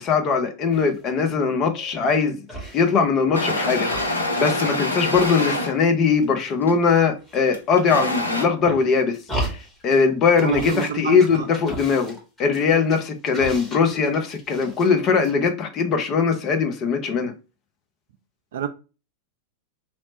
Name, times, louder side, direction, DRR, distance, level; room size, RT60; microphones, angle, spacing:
voice 1, 0.0-2.4 2.7-9.2 9.4-17.3, left 5 dB, 35° left, 0.6 m, -21 dB
sound 1, 0.7-1.1 1.6-2.2 2.5-3.5 3.7-5.9 6.2-7.0 7.2-8.0 8.5-10.0 10.3-10.9 11.2-14.9 15.2-15.3, right 1 dB, 10° left, 1.3 m, -36 dB
sound 2, 3.3-5.7 6.6-6.9 7.5-8.4, left 1 dB, 80° left, 0.6 m, -25 dB
voice 2, 10.4-11.5 18.5-18.7, right 8 dB, 60° right, 0.4 m, -28 dB
3.1 x 2.0 x 4.0 m
figure-of-eight pair, 90°, 0 cm